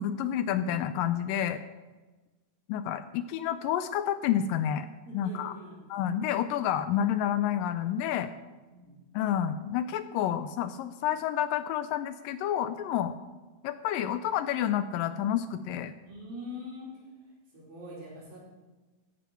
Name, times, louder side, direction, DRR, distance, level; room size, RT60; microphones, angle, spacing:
voice 1, 0.0-1.6 2.7-4.9 5.1-5.5 5.9-8.3 9.1-13.1 13.6-15.9, left 10 dB, 80° left, 11 dB, 2.1 m, -29 dB
voice 2, 5.2-5.8 8.7-9.0 16.0-16.9 17.5-18.4, left 1 dB, 75° right, -6 dB, 6.6 m, -43 dB
14.5 x 11.0 x 4.5 m, 1.2 s
omnidirectional pair, 4.2 m